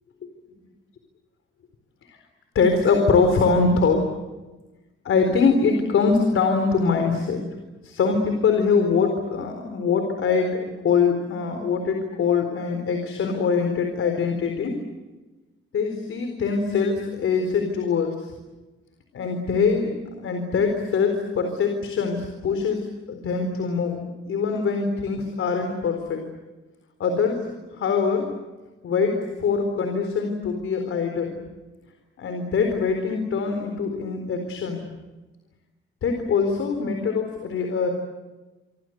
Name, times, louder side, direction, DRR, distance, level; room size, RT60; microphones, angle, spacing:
voice 1, 2.5-4.1 5.0-7.4 7.8-14.7 15.7-18.3 19.1-26.2 27.0-28.3 28.8-31.4 32.2-34.8 36.0-37.9, left 5 dB, 75° left, 5 dB, 4.2 m, -23 dB
27.5 x 26.5 x 8.1 m, 1.2 s
cardioid pair, 125°, 21 cm